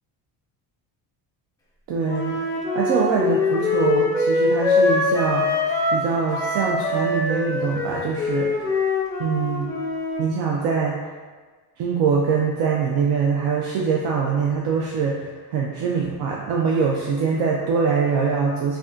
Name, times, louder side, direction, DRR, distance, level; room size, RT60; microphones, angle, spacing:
voice 1, 1.9-2.4 2.7-5.6 5.9-8.8 9.2-9.7 10.2-11.0 11.8-18.8, right 5 dB, 60° right, -2 dB, 0.5 m, -23 dB
Wind instrument woodwind instrument, 2.1-6.0 6.3-10.3, left 3 dB, 10° left, 0.4 m, -23 dB
4.8 x 2.3 x 2.5 m, 1.4 s
cardioid pair, 165°, 42 cm